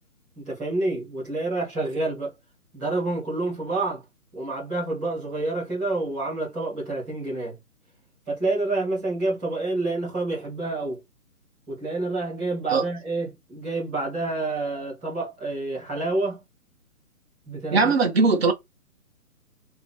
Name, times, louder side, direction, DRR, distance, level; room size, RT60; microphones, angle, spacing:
voice 1, 0.3-2.3 2.7-4.0 4.3-7.6 8.3-11.0 11.7-16.4 17.5-17.9, right 2 dB, ahead, 1.0 m, -28 dB
voice 2, 17.7-18.5, right 4 dB, 45° right, 1.5 m, -19 dB
4.7 x 3.4 x 3.4 m
hypercardioid pair, 175°, 45 cm